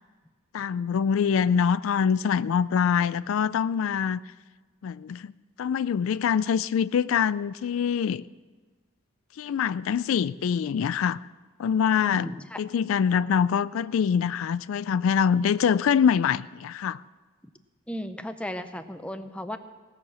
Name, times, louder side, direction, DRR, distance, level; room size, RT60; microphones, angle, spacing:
voice 1, 0.5-4.2 4.8-5.3 5.6-8.2 9.4-11.2 11.6-12.3 12.6-17.0, left 7 dB, 80° left, 0.3 m, -24 dB
voice 2, 11.9-12.6 17.9-19.6, left 1 dB, 5° left, 0.5 m, -35 dB
17.5 x 6.5 x 7.4 m
head